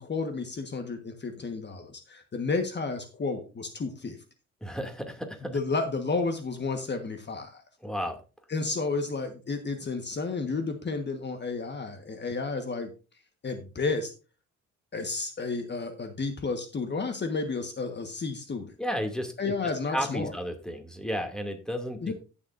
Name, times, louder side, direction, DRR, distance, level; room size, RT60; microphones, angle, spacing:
voice 1, 0.0-4.2 5.4-7.6 8.5-12.9 13.4-14.1 14.9-18.7 19.4-20.3 22.0-22.1, left 4 dB, 35° left, 6 dB, 1.4 m, -31 dB
voice 2, 4.6-5.6 7.8-8.2 18.8-19.5 19.9-22.0, equal, ahead, 5 dB, 2.5 m, -33 dB
16.5 x 7.1 x 2.6 m, 0.33 s
cardioid pair, 90°, 30 cm